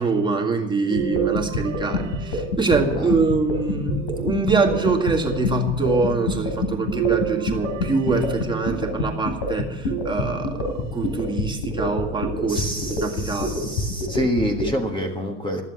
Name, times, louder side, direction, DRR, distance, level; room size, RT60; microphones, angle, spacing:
voice 1, 0.0-12.7 13.0-13.7, right 3 dB, 10° right, 1 dB, 1.9 m, -24 dB
sound 1, 0.9-3.2 3.9-4.9 6.9-9.0 9.9-10.8 11.4-11.5 12.9-13.0, right 17 dB, 70° right, 1.4 m, -30 dB
sound 2, 1.0-14.7, left 2 dB, 75° left, 3.8 m, -26 dB
voice 2, 12.5-15.6, equal, 15° left, 2 dB, 1.5 m, -27 dB
13.5 x 7.4 x 9.6 m, 1.1 s
hypercardioid pair, 95°, 37 cm